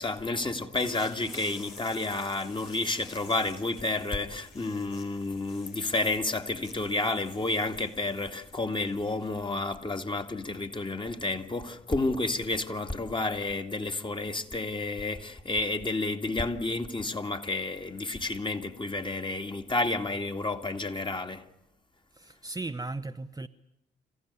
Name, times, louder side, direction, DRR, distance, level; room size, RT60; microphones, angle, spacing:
voice 1, 0.0-21.5, left 2 dB, 20° left, 2.2 m, -30 dB
sound 1, 0.7-10.2, left 4 dB, 80° left, 3.4 m, -51 dB
voice 2, 22.1-23.5, right 2 dB, 15° right, 0.9 m, -36 dB
27.5 x 15.0 x 9.7 m
hypercardioid pair, 45°, 21 cm